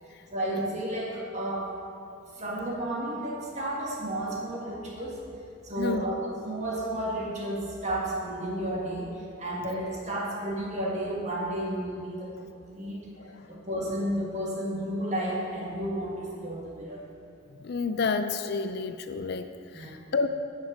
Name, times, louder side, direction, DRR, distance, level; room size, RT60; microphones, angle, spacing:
voice 1, 0.3-1.7 2.4-5.2 5.6-9.1 9.4-13.0 13.5-17.0 19.7-20.0, right 1 dB, 35° right, -3 dB, 1.8 m, -32 dB
voice 2, 5.8-6.1 13.2-13.4 17.6-19.5 19.7-20.3, left 4 dB, 50° left, 9 dB, 0.4 m, -30 dB
10.5 x 6.5 x 4.8 m, 2.5 s
head